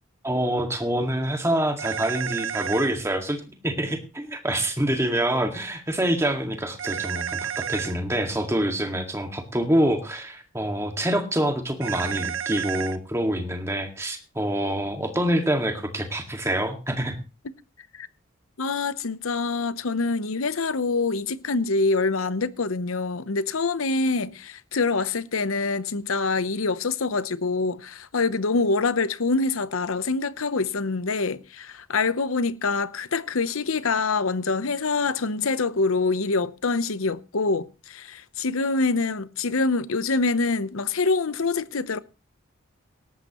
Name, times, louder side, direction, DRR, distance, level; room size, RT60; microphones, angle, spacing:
voice 1, 0.2-17.2, right 1 dB, 15° right, 2.0 m, -26 dB
sound 1, 1.8-2.9 6.8-7.9 11.8-13.0, right 9 dB, 65° right, 0.8 m, -31 dB
voice 2, 18.6-42.0, left 3 dB, 75° left, 0.8 m, -25 dB
18.0 x 13.5 x 3.1 m
head